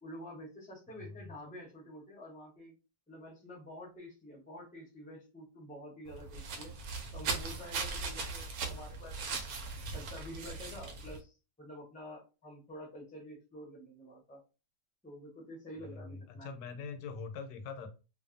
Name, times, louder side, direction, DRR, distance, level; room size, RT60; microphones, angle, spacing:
voice 1, 0.0-2.7 3.1-6.8 7.1-9.5 9.9-14.4 15.0-16.6, equal, 10° left, -2 dB, 0.4 m, -48 dB
sound 1, 6.1-11.2, right 4 dB, 70° right, 1.0 m, -39 dB
voice 2, 15.8-17.9, left 5 dB, 90° left, 7 dB, 1.3 m, -44 dB
2.5 x 2.5 x 2.5 m, 0.31 s
omnidirectional pair, 1.8 m